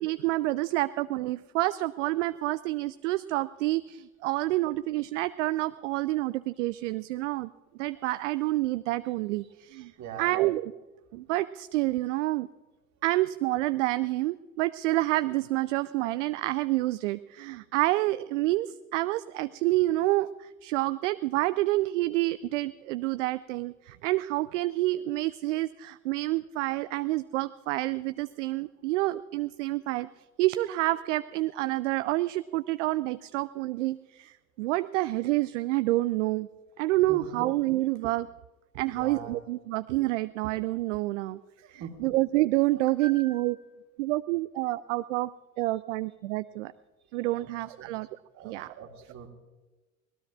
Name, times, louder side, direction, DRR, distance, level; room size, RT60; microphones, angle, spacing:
voice 1, 0.0-7.5 7.8-9.9 10.2-10.7 11.1-12.5 13.0-30.1 30.4-36.5 36.8-38.3 38.8-41.4 41.7-43.6 44.0-45.3 45.6-46.7 47.1-48.1 48.4-48.7, right 18 dB, 60° right, 15 dB, 0.5 m, -28 dB
voice 2, 10.0-10.4 37.1-37.5 38.8-39.4 41.6-42.1 43.0-43.5 47.3-47.5 47.8-47.9 48.3-49.3, right 6 dB, 40° right, 2 dB, 2.4 m, -43 dB
25.0 x 19.0 x 2.5 m, 1.2 s
figure-of-eight pair, 65°, 41 cm